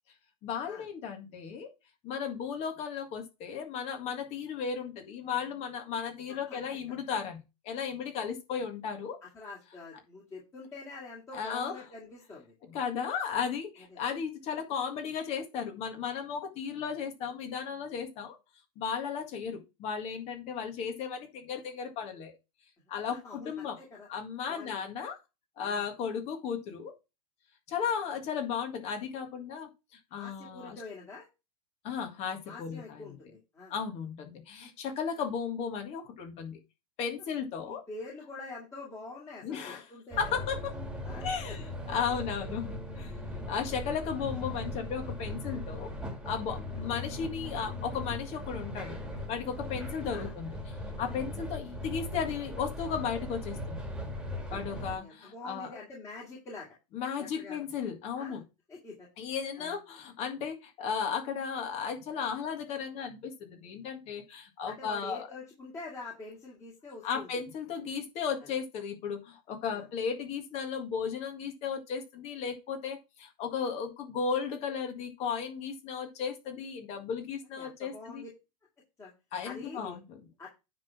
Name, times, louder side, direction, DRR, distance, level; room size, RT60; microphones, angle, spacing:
voice 1, 0.4-1.7 2.0-7.4 7.6-9.2 11.3-11.7 12.7-18.4 18.8-22.3 22.9-23.8 24.1-25.2 25.6-26.9 27.7-29.7 30.1-30.8 31.8-33.2 33.7-36.6 37.0-37.8 39.4-39.8 40.2-40.7 41.2-43.1 43.5-45.9 46.3-49.0 49.3-53.8 54.5-55.7 56.9-58.4 59.2-65.3 67.0-78.2 79.3-80.2, left 6 dB, 35° left, 5 dB, 1.9 m, -35 dB
voice 2, 6.5-6.8 9.2-12.5 13.9-14.0 23.1-24.1 24.5-24.8 25.6-25.8 30.1-31.3 32.4-33.7 34.6-34.7 37.7-40.5 41.0-41.6 42.1-42.3 43.5-43.6 46.7-46.9 50.1-50.3 54.8-56.7 57.2-57.6 58.2-58.4 58.7-59.1 59.6-59.8 64.7-67.3 69.7-69.9 77.4-78.3 79.0-79.1 79.4-80.0 80.4-80.5, left 3 dB, 15° left, -4 dB, 2.4 m, -46 dB
sound 1, 40.1-55.0, left 1 dB, 5° right, 2.1 m, -39 dB
9.6 x 3.9 x 6.0 m, 0.26 s
supercardioid pair, 145°, 18 cm